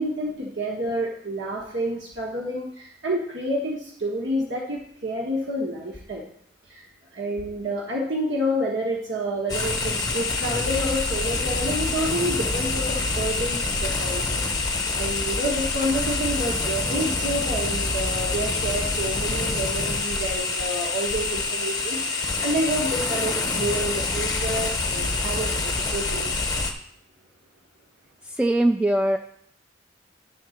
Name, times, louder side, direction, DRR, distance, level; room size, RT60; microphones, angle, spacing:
voice 1, 0.0-6.2 6.7-6.9 7.1-26.3, right 1 dB, 70° right, -2 dB, 1.4 m, -29 dB
sound 1, 9.5-26.7, left 3 dB, 20° left, 0.9 m, -26 dB
voice 2, 28.4-29.2, right 1 dB, 5° right, 5 dB, 0.3 m, -20 dB
11.0 x 3.9 x 6.4 m, 0.67 s
head